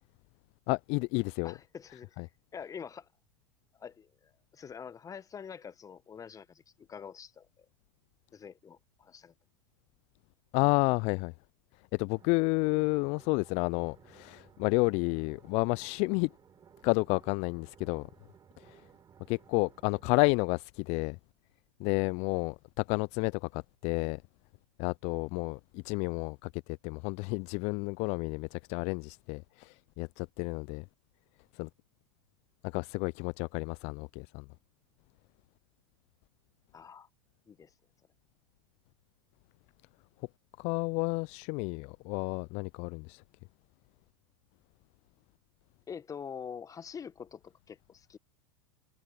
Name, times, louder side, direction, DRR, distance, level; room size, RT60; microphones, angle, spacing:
voice 1, 0.7-1.5 2.2-2.3 10.5-11.3 11.9-16.3 16.8-18.1 18.6-18.8 19.3-21.2 21.8-24.2 24.8-30.8 31.5-31.7 32.6-34.4 40.6-43.2, left 30 dB, 45° left, 0.6 m, -31 dB
voice 2, 1.4-2.2 2.5-3.1 3.8-7.7 8.3-9.3 36.7-37.1 37.5-37.7 45.9-48.2, left 7 dB, 20° left, 1.6 m, -45 dB
sound 1, 12.1-20.1, right 7 dB, 25° right, 3.8 m, -59 dB
figure-of-eight pair, 90°, 16 cm